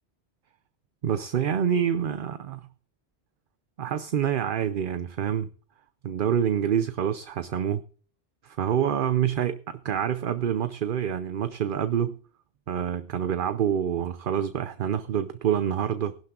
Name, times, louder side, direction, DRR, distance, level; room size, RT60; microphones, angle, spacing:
voice 1, 1.0-2.7 3.8-5.5 6.0-7.8 8.4-12.1 12.7-16.2, right 9 dB, 55° right, 0.8 m, -27 dB
19.5 x 12.0 x 2.4 m
omnidirectional pair, 1.1 m